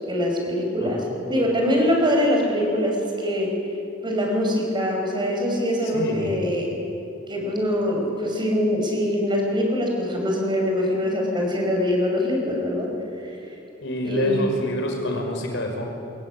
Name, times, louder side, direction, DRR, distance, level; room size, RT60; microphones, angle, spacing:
voice 1, 0.1-3.5 4.0-6.7 7.3-12.9 14.0-14.5, equal, 25° right, 0 dB, 6.6 m, -23 dB
voice 2, 0.8-1.1 5.8-6.4 13.8-15.9, left 1 dB, 65° left, 2 dB, 5.6 m, -28 dB
26.0 x 22.5 x 9.9 m, 2.8 s
head